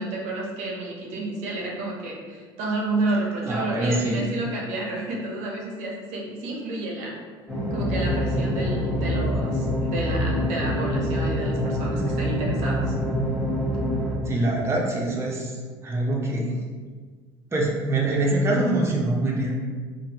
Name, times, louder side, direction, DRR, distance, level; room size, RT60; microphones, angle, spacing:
voice 1, 0.0-7.2 7.7-12.9, right 2 dB, 65° right, -2 dB, 0.7 m, -30 dB
voice 2, 3.4-4.3 14.3-15.5 15.8-16.5 17.5-19.6, right 2 dB, 20° right, -3 dB, 0.6 m, -24 dB
sound 1, 7.5-14.2, equal, 5° left, 1.1 m, -25 dB
3.4 x 2.0 x 2.8 m, 1.5 s
hypercardioid pair, 75°, 13 cm